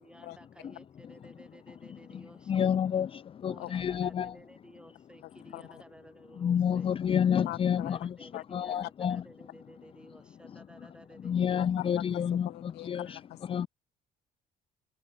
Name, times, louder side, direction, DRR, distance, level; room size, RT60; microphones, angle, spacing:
voice 1, 0.0-2.7 3.5-6.9 7.7-12.0, right 1 dB, 5° right, 7.4 m, -54 dB
voice 2, 2.5-4.3 6.4-8.1 8.5-9.2 11.2-13.2 13.5-13.7, left 8 dB, 35° left, 0.5 m, -29 dB
voice 3, 7.4-7.9 8.3-8.9 11.6-13.7, left 19 dB, 85° left, 0.9 m, -42 dB
cardioid pair, 110°, 17 cm